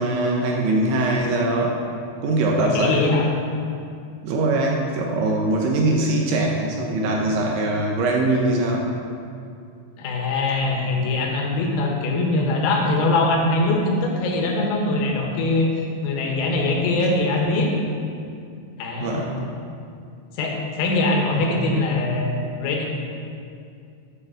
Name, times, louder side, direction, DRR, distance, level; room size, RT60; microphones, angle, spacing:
voice 1, 0.0-1.8 2.2-3.0 4.2-8.9 19.0-19.5, right 2 dB, 75° right, -1 dB, 3.0 m, -22 dB
voice 2, 2.6-3.3 10.0-15.7 16.0-17.7 18.8-19.3 20.3-22.9, left 2 dB, 80° left, 0 dB, 4.0 m, -22 dB
9.4 x 7.0 x 7.6 m, 2.4 s
omnidirectional pair, 6.0 m